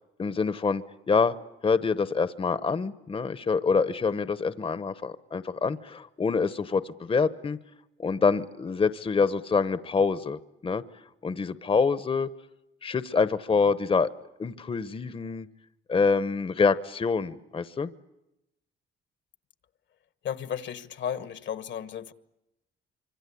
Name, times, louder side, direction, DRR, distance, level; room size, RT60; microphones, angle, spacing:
voice 1, 0.2-1.3 1.6-7.6 8.0-10.8 11.2-12.3 12.8-14.1 14.4-15.5 15.9-17.9, left 5 dB, 25° left, 0.9 m, -26 dB
voice 2, 20.2-22.1, left 9 dB, 65° left, 1.3 m, -34 dB
25.5 x 25.0 x 8.4 m
cardioid pair, 90°, 20 cm